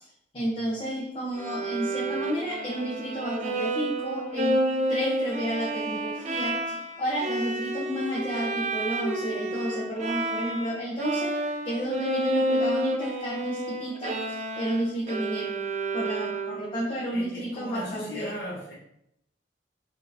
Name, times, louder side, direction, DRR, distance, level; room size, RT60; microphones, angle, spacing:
voice 1, 0.3-11.4 11.6-15.5 15.9-18.4, equal, 30° left, -5 dB, 0.8 m, -31 dB
Bowed string instrument, 1.4-10.7 11.0-16.8, right 1 dB, 40° right, 0.4 m, -30 dB
voice 2, 17.1-18.7, left 1 dB, 70° left, -9 dB, 1.2 m, -37 dB
6.1 x 2.8 x 2.6 m, 0.78 s
head